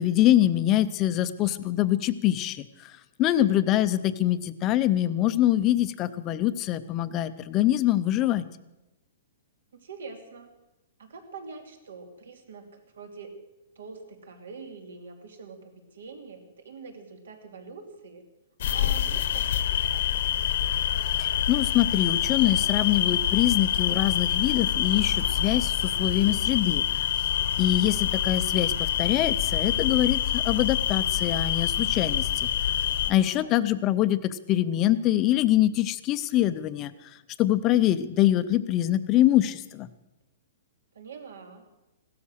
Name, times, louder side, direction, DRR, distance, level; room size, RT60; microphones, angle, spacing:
voice 1, 0.0-2.6 3.2-8.4 21.5-26.8 27.6-32.5 33.1-36.9 37.4-39.9, left 13 dB, 20° left, 13 dB, 0.5 m, -24 dB
voice 2, 3.2-3.6 9.7-10.5 11.0-13.4 13.7-18.2 18.7-20.3 27.6-28.1 33.1-33.6 40.9-41.7, right 4 dB, 80° right, 5 dB, 2.8 m, -45 dB
sound 1, 18.6-33.1, left 10 dB, 50° left, 0.9 m, -26 dB
16.0 x 13.0 x 6.4 m, 0.96 s
hypercardioid pair, 175°, 0 cm